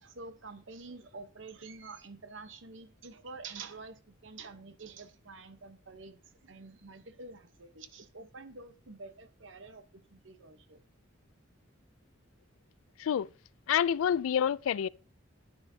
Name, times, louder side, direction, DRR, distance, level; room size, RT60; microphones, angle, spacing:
voice 1, 0.0-10.8, right 4 dB, 65° right, 0.9 m, -48 dB
voice 2, 13.0-13.3 13.7-14.9, left 8 dB, 85° left, 0.3 m, -28 dB
10.0 x 9.8 x 2.7 m
head